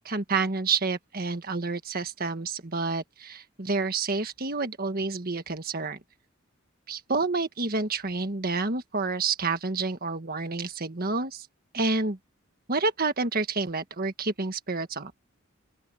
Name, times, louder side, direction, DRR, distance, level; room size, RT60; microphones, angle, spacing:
voice 1, 0.0-6.0 6.9-11.5 11.7-12.2 12.7-15.1, right 3 dB, 45° right, 1.6 m, -29 dB
open air
head